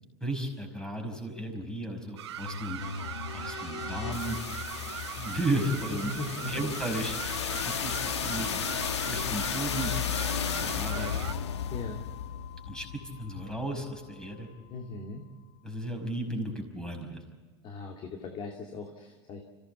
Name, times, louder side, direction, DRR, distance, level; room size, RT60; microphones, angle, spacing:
voice 1, 0.2-2.8 3.3-4.5 5.2-6.1 6.5-8.5 9.1-10.0 10.6-11.1 12.7-12.9 13.2-14.5 15.6-17.2, right 1 dB, 5° left, 4 dB, 5.3 m, -34 dB
sound 1, 2.2-11.3, right 11 dB, 80° right, 1.0 m, -40 dB
sound 2, 2.4-14.2, left 8 dB, 85° left, 1.1 m, -34 dB
voice 2, 5.9-6.8 11.7-12.0 14.7-15.2 17.6-19.4, left 3 dB, 40° left, 3 dB, 2.5 m, -39 dB
25.5 x 16.5 x 8.1 m, 1.5 s
hypercardioid pair, 105°, 14 cm